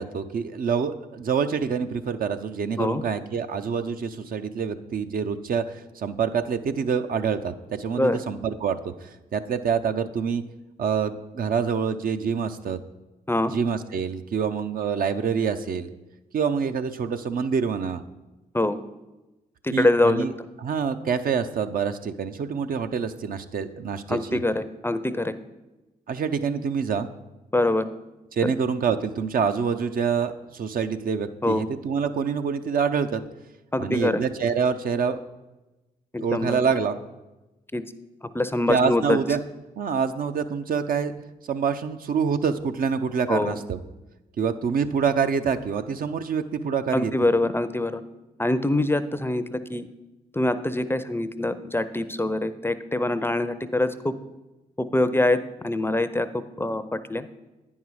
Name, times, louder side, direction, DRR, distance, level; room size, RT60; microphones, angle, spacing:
voice 1, 0.0-10.4 10.8-12.8 13.4-15.9 16.3-18.0 19.7-20.3 20.6-24.4 26.1-27.1 28.3-33.2 33.8-35.2 36.2-36.9 38.7-39.4 39.8-41.1 41.5-43.8 44.4-47.1, right 6 dB, 55° right, 8 dB, 0.5 m, -26 dB
voice 2, 19.6-20.3 24.1-25.3 27.5-27.8 28.4-28.5 31.4-31.6 33.7-34.2 36.1-36.6 37.7-37.8 38.3-39.2 43.3-43.6 46.9-48.0 48.4-49.9 50.3-54.1 54.9-55.4 55.6-56.3 56.6-57.3, left 2 dB, 15° left, 12 dB, 0.5 m, -24 dB
9.3 x 5.5 x 4.7 m, 1.1 s
supercardioid pair, 45°, 17 cm